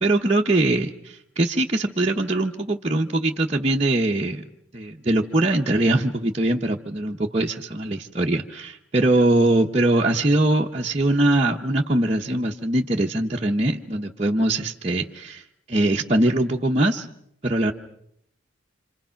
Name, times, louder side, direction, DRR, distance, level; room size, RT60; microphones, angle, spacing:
voice 1, 0.0-4.4 4.7-17.1 17.4-17.7, right 1 dB, 30° right, -1 dB, 0.9 m, -22 dB
27.5 x 27.0 x 5.8 m, 0.75 s
head